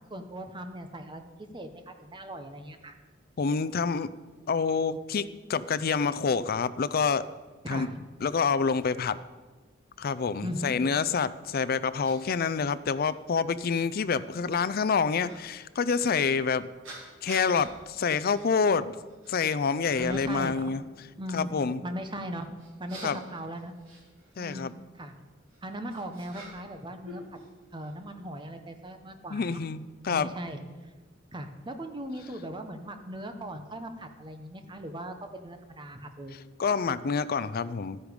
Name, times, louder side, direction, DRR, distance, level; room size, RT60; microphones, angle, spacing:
voice 1, 0.1-2.9 7.6-8.0 10.4-10.8 20.0-20.7 21.2-22.5 22.8-23.7 24.4-25.1 25.6-27.2 27.7-29.6 30.1-30.6 31.3-36.4, equal, 25° right, 7 dB, 1.0 m, -38 dB
voice 2, 3.4-4.1 4.5-7.3 7.7-7.9 8.2-9.2 10.0-16.7 17.2-19.0 19.3-20.8 21.3-21.8 23.0-23.2 24.4-24.7 29.3-30.3 36.6-38.0, left 5 dB, 50° left, 15 dB, 0.5 m, -27 dB
sound 1, 11.4-11.5 12.0-12.2 13.1-13.2 15.2-15.4 16.8-17.7 18.3-18.5 18.9-19.4 19.9-20.4 22.6-24.5 25.5-26.8 27.0-27.9, right 1 dB, 80° right, 4.0 m, -47 dB
12.5 x 9.7 x 5.2 m, 1.3 s
head